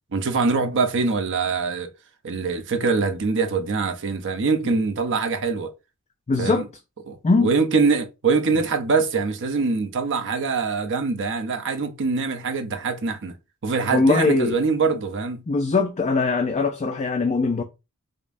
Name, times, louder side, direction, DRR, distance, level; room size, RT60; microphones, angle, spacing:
voice 1, 0.1-1.9 2.2-5.7 6.4-6.7 7.1-7.2 7.4-13.3 13.6-15.4, right 4 dB, 55° right, 0.7 m, -23 dB
voice 2, 6.3-6.7 7.2-7.5 13.9-14.6 15.5-17.6, left 3 dB, 30° left, 0.4 m, -21 dB
5.1 x 2.1 x 2.5 m
head